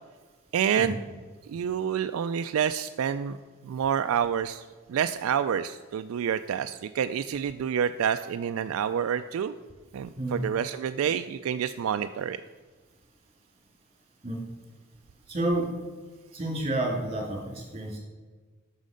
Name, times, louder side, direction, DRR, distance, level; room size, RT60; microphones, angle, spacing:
voice 1, 0.5-1.0 1.5-3.4 3.6-4.6 4.9-9.5 9.9-12.4, right 8 dB, 75° right, 10 dB, 0.3 m, -28 dB
voice 2, 15.3-15.7 16.3-18.0, right 1 dB, 30° right, -1 dB, 2.6 m, -30 dB
9.3 x 6.4 x 5.1 m, 1.4 s
head